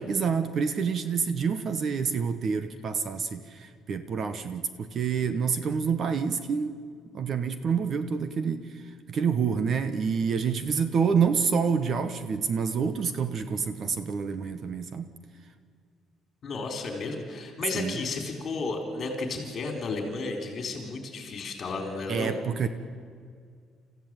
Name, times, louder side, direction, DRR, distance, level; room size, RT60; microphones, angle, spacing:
voice 1, 0.1-6.7 7.1-8.8 9.1-15.1 17.7-18.0 22.1-22.7, right 6 dB, 35° right, 11 dB, 0.9 m, -27 dB
voice 2, 16.4-22.4, left 3 dB, 35° left, 4 dB, 3.9 m, -33 dB
28.5 x 15.0 x 8.9 m, 2.1 s
cardioid pair, 175°, 0 cm